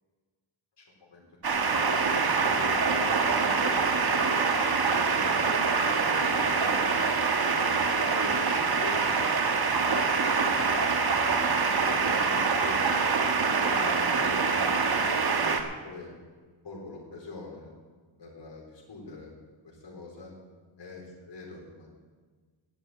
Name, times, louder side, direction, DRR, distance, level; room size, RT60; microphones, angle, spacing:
voice 1, 0.8-1.2 1.7-4.1 4.8-6.8 7.4-9.3 9.7-10.2 11.5-12.8 13.5-14.7 15.0-16.1 16.6-17.7 18.2-19.3 19.6-20.3 20.8-21.9, left 3 dB, 60° left, -3 dB, 4.4 m, -43 dB
sound 1, 1.4-15.6, right 4 dB, 50° right, 1.4 m, -25 dB
11.0 x 9.3 x 8.9 m, 1.4 s
wide cardioid pair, 100°, 47 cm